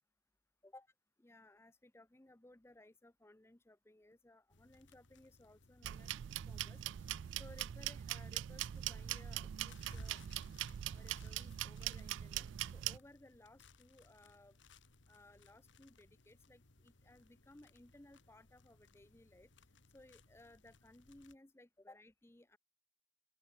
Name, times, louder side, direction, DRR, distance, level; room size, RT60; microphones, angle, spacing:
voice 1, 1.2-10.2 10.9-12.5 12.7-14.6 15.1-19.5 19.9-22.6, left 1 dB, 15° left, 0.5 m, -61 dB
sound 1, 4.5-21.4, left 3 dB, 70° left, 1.9 m, -64 dB
sound 2, 5.8-13.0, right 12 dB, 70° right, 0.3 m, -42 dB
open air
head